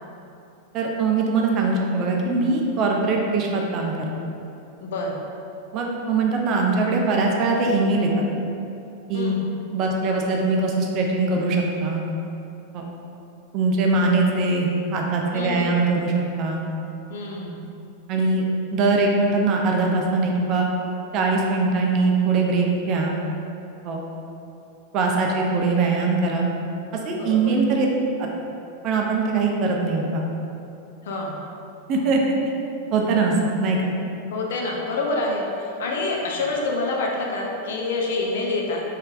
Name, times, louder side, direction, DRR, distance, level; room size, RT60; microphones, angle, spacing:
voice 1, 0.7-4.1 5.7-8.2 9.1-9.4 9.7-12.0 12.7-12.9 13.5-16.1 16.4-16.6 18.1-20.7 21.1-23.1 23.8-24.0 24.9-26.4 27.1-27.9 28.2-28.3 28.8-30.2 31.9-32.2 32.9-33.3 33.6-33.9, right 3 dB, 40° right, 0 dB, 0.4 m, -22 dB
voice 2, 4.8-5.2 9.1-9.4 15.3-15.9 17.1-17.6 27.1-27.5 31.0-31.4 34.3-38.8, left 2 dB, 60° left, -1 dB, 0.4 m, -27 dB
3.2 x 3.1 x 2.3 m, 2.8 s
figure-of-eight pair, 90°, 0 cm